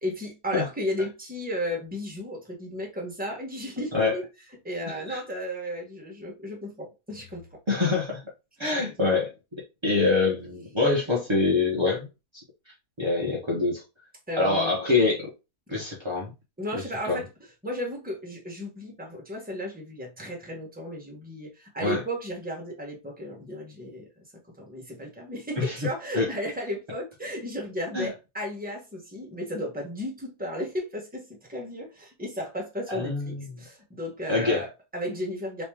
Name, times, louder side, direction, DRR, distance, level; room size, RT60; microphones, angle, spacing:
voice 1, 0.0-4.2 4.6-7.6 8.7-8.9 14.3-14.7 16.6-17.3 17.6-24.2 24.6-35.6, equal, 5° right, 0.8 m, -34 dB
voice 2, 7.7-8.2 8.6-9.3 9.8-12.1 13.0-13.8 14.4-15.3 15.7-16.3 17.1-17.2 21.8-22.0 25.6-25.7 26.1-26.3 27.9-28.1 32.9-33.5 34.3-34.6, left 3 dB, 30° right, 0.5 m, -25 dB
3.0 x 3.0 x 3.4 m
omnidirectional pair, 1.8 m